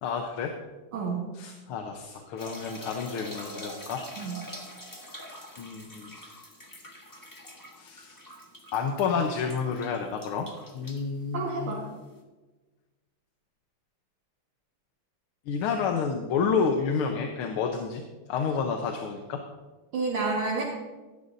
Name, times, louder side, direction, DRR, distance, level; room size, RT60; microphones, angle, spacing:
voice 1, 0.0-0.5 1.3-4.0 5.6-6.1 7.8-8.2 8.7-10.5 10.7-11.8 15.5-18.0 18.3-19.4, left 5 dB, 85° left, 3 dB, 1.8 m, -29 dB
voice 2, 0.9-1.3 4.2-4.4 11.3-11.8 19.9-20.6, right 4 dB, 75° right, -4 dB, 2.4 m, -29 dB
sound 1, 2.4-12.2, equal, 15° left, 1.0 m, -45 dB
16.0 x 12.5 x 2.7 m, 1.2 s
omnidirectional pair, 2.3 m